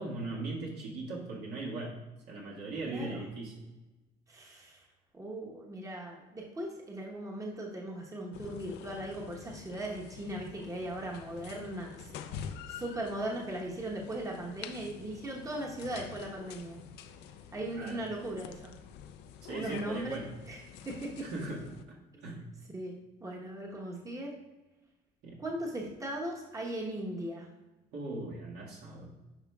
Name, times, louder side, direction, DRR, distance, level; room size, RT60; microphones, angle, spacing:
voice 1, 0.0-1.9 2.3-3.7 17.7-18.0 19.4-20.3 21.2-21.6 21.9-22.4 25.2-25.4 27.9-29.1, right 2 dB, 80° right, -4 dB, 1.8 m, -39 dB
voice 2, 2.8-3.2 4.3-4.8 5.1-16.8 17.5-18.7 19.5-21.4 22.7-24.3 25.4-27.5, right 1 dB, 20° right, -1 dB, 1.1 m, -38 dB
sound 1, 8.3-21.8, left 8 dB, 85° left, 0.5 m, -47 dB
10.0 x 5.1 x 2.4 m, 1.1 s
cardioid pair, 110°, 17 cm